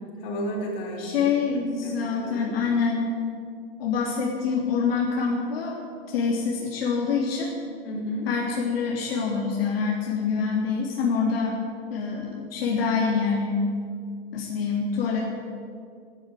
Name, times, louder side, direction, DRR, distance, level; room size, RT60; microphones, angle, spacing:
voice 1, 0.2-1.9 2.2-2.6 7.8-8.3, equal, 45° left, -2 dB, 4.6 m, -33 dB
voice 2, 1.0-3.1 3.8-5.8 6.1-7.5 8.3-11.6 11.9-13.6 14.3-15.2, left 5 dB, 70° left, -3 dB, 3.3 m, -26 dB
13.5 x 12.5 x 7.8 m, 2.2 s
supercardioid pair, 155°, 30 cm